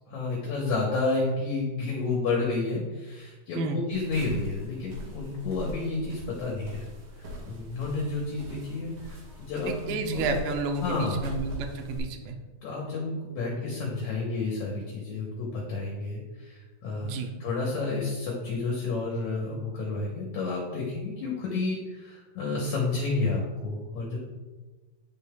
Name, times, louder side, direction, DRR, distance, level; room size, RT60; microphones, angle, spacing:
voice 1, 0.1-6.9 7.2-10.3 10.8-11.4 12.6-24.2, left 3 dB, 70° left, -3 dB, 1.8 m, -31 dB
sound 1, 3.9-12.0, left 1 dB, 65° right, 2.3 m, -41 dB
voice 2, 9.7-12.4 17.0-17.3, right 4 dB, 80° right, 5 dB, 2.1 m, -31 dB
9.1 x 5.4 x 2.2 m, 1.2 s
omnidirectional pair, 4.3 m